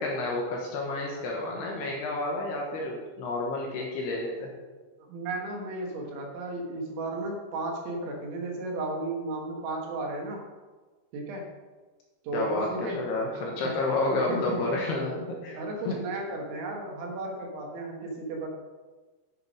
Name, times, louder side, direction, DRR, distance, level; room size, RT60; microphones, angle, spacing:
voice 1, 0.0-4.5 12.3-15.6 15.9-16.0, left 2 dB, 70° left, -1 dB, 2.8 m, -30 dB
voice 2, 5.1-10.4 11.1-11.5 12.3-13.3 14.3-14.7 15.5-18.5, right 2 dB, 75° right, 0 dB, 3.7 m, -34 dB
10.5 x 6.6 x 5.3 m, 1.3 s
omnidirectional pair, 5.7 m